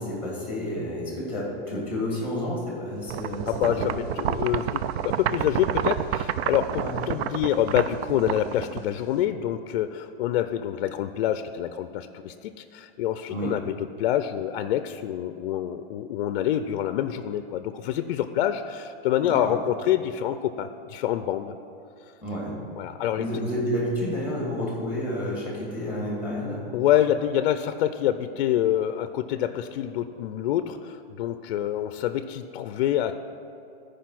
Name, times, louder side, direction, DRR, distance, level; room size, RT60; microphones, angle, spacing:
voice 1, 0.0-3.5 3.9-4.0 6.7-6.9 13.3-13.5 19.2-19.4 22.2-22.5 23.2-26.6, equal, 5° right, -4 dB, 2.3 m, -30 dB
sound 1, 3.1-9.2, right 10 dB, 75° right, 0.5 m, -29 dB
voice 2, 3.5-21.5 22.8-23.3 26.7-33.2, left 11 dB, 60° left, 10 dB, 0.4 m, -26 dB
13.0 x 4.9 x 5.9 m, 2.7 s
supercardioid pair, 170°, 31 cm